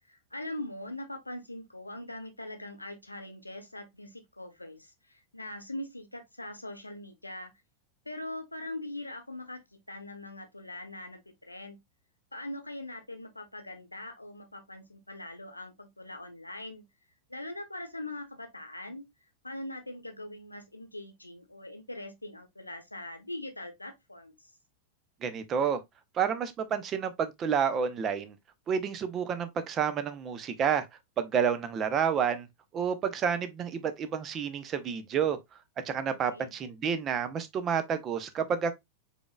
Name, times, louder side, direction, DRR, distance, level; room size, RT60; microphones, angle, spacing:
voice 1, 0.1-7.5 8.1-11.8 12.3-16.8 17.3-19.1 19.4-24.3 36.1-36.5, left 1 dB, 85° left, 0.8 m, -42 dB
voice 2, 25.2-25.8 26.1-28.4 28.7-30.9 31.2-32.5 32.7-35.4 35.8-38.7, right 7 dB, 30° right, 0.6 m, -29 dB
5.1 x 3.5 x 2.3 m
figure-of-eight pair, 90°, 0 cm